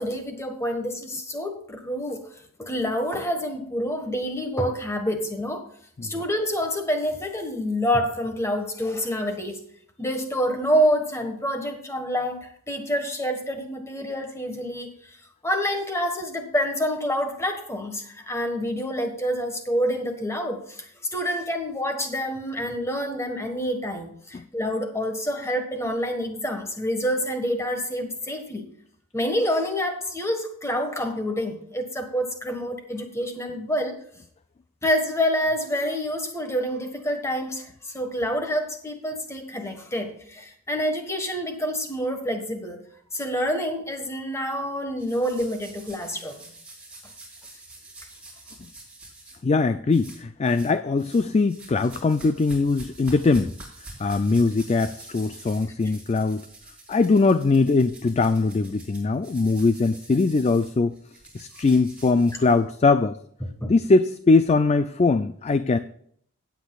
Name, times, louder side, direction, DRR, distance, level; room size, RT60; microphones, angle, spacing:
voice 1, 0.0-2.2 2.6-5.6 6.0-9.6 10.0-14.9 15.4-28.6 29.1-33.9 34.8-42.8 43.1-46.3 63.4-63.7, equal, 10° left, 5 dB, 1.4 m, -27 dB
sound 1, 45.0-49.4 49.9-50.7 51.0-62.9, right 2 dB, 5° right, 4.1 m, -46 dB
voice 2, 49.4-53.5 54.0-56.4 56.9-60.9 61.3-63.2 63.7-65.8, left 3 dB, 30° left, 11 dB, 0.3 m, -21 dB
17.0 x 8.1 x 2.4 m, 0.65 s
head